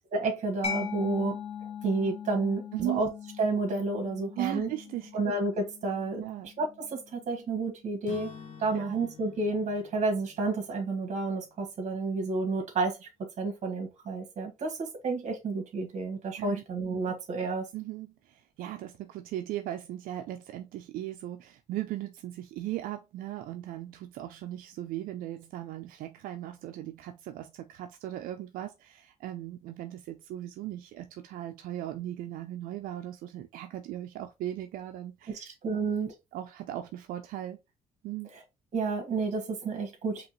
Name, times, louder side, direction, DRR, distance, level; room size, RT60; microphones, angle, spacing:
voice 1, 0.1-1.4 1.8-3.1 3.4-4.7 5.1-6.2 6.6-8.3 8.6-13.1 13.4-17.7 35.3-36.1 38.7-40.3, right 3 dB, 55° right, 1.7 m, -30 dB
Mallet percussion, 0.6-8.0, left 7 dB, 45° left, 1.7 m, -41 dB
voice 2, 2.7-3.0 4.4-5.2 6.1-6.5 8.7-9.0 16.3-16.6 17.7-35.9 36.3-37.6 38.0-38.3, right 13 dB, 85° right, 0.4 m, -38 dB
Acoustic guitar / Strum, 8.1-12.0, left 6 dB, 65° left, 1.1 m, -49 dB
5.1 x 2.9 x 2.9 m
cardioid pair, 105°, 14 cm